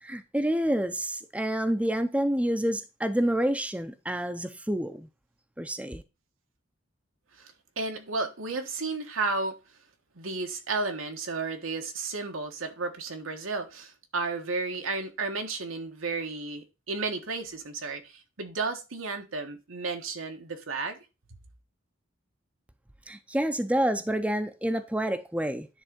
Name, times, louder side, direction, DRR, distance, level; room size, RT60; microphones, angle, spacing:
voice 1, 0.0-5.1 5.6-6.0 23.1-25.7, right 1 dB, 5° right, 0.6 m, -28 dB
voice 2, 7.4-9.6 10.1-21.0, right 3 dB, 85° right, 1.4 m, -33 dB
10.0 x 3.7 x 5.2 m
head